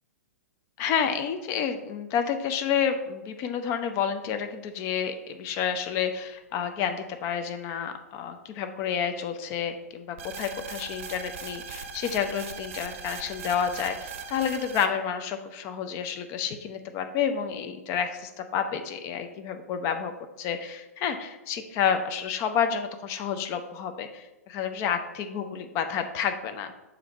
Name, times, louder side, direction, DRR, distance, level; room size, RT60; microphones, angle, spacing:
voice 1, 0.8-20.1 20.4-26.7, left 7 dB, 35° left, 7 dB, 0.6 m, -30 dB
sound 1, 10.2-14.9, right 6 dB, 50° right, 0.7 m, -39 dB
6.8 x 3.9 x 4.4 m, 1.0 s
figure-of-eight pair, 110°, 8 cm